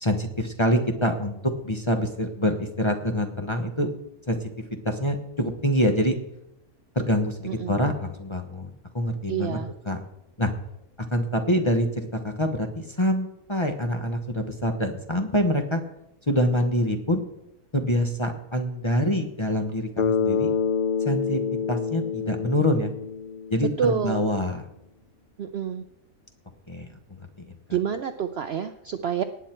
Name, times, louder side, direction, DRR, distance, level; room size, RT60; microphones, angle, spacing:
voice 1, 0.0-3.9 4.3-4.4 4.8-6.2 6.9-9.6 9.8-10.0 10.4-10.5 11.1-15.8 16.3-17.2 17.7-20.5 21.0-21.4 21.7-22.9 23.5-24.6 26.7-26.9 27.2-27.5, equal, 20° left, 5 dB, 0.9 m, -25 dB
voice 2, 7.5-7.8 9.3-9.7 23.8-24.2 25.4-25.8 27.7-29.2, right 8 dB, 60° right, 9 dB, 0.7 m, -27 dB
Bass guitar, 20.0-24.0, left 6 dB, 70° left, 0.4 m, -27 dB
18.5 x 8.2 x 4.4 m, 0.81 s
omnidirectional pair, 1.6 m